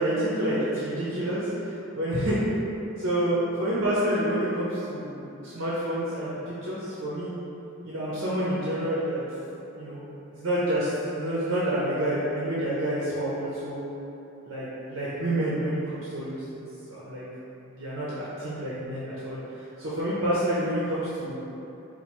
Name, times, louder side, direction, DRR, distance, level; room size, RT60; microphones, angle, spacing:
voice 1, 0.0-2.4 3.0-7.3 7.8-9.2 9.7-10.0 10.3-13.8 14.5-16.6 16.9-17.2 17.7-21.4, right 1 dB, 80° right, -8 dB, 0.7 m, -28 dB
4.4 x 2.2 x 4.3 m, 3.0 s
head